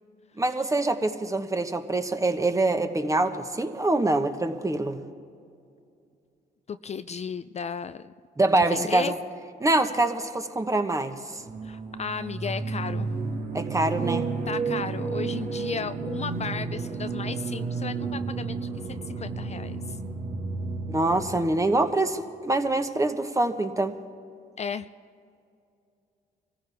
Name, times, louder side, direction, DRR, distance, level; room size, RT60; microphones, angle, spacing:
voice 1, 0.4-5.0 8.4-9.2 9.6-11.4 13.5-14.3 20.9-24.0, right 2 dB, 20° right, 7 dB, 1.2 m, -25 dB
voice 2, 6.7-8.1 8.5-9.1 11.6-13.1 14.5-20.0 24.6-24.9, left 6 dB, 40° left, 12 dB, 0.4 m, -34 dB
sound 1, 11.4-21.4, right 4 dB, 55° right, 1.9 m, -32 dB
24.0 x 15.0 x 3.5 m, 2.4 s
cardioid pair, 70°, 17 cm